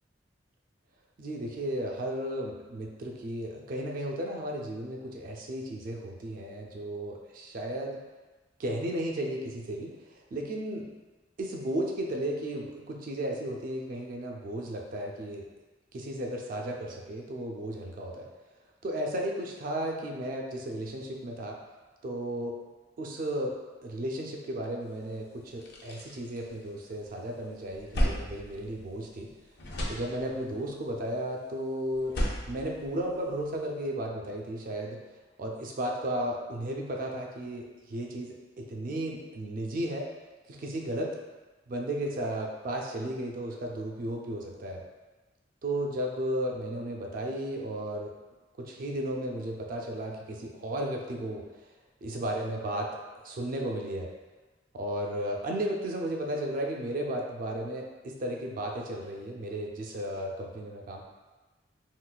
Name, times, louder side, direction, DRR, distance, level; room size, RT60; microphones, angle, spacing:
voice 1, 1.2-8.0 8.6-10.9 11.4-15.5 15.9-18.3 18.8-21.6 22.0-22.6 23.0-23.6 23.8-29.3 29.9-32.2 32.5-35.0 35.4-40.1 40.5-41.1 41.7-44.8 45.6-48.1 48.6-51.4 52.0-52.9 53.2-54.1 54.7-61.0, right 1 dB, 45° right, 0 dB, 0.3 m, -34 dB
sound 1, 24.9-25.0 25.4-27.1 27.4-29.3 29.6-30.6 31.9-33.6, equal, 60° left, 0.5 m, -34 dB
3.7 x 2.4 x 2.3 m, 1.2 s
head